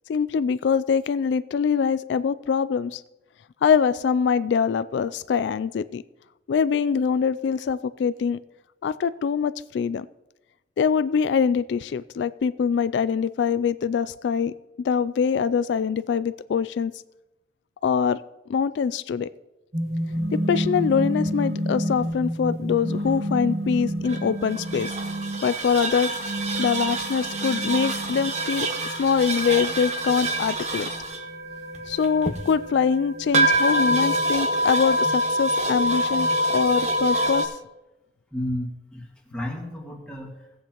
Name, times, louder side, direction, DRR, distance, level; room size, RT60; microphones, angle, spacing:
voice 1, 0.1-3.0 3.6-6.0 6.5-8.4 8.8-10.1 10.8-16.9 17.8-18.2 18.5-19.3 20.3-24.9 25.4-26.1 26.6-28.7 29.0-30.9 31.9-37.6, left 6 dB, 80° left, 15 dB, 0.3 m, -24 dB
sound 1, 19.7-37.5, right 1 dB, 40° right, 1.2 m, -26 dB
sound 2, 20.2-22.2 22.8-25.5 26.1-28.4, equal, 75° right, 0.8 m, -32 dB
voice 2, 38.3-40.6, left 1 dB, 5° left, -2 dB, 1.9 m, -33 dB
17.5 x 8.1 x 3.0 m, 0.98 s
head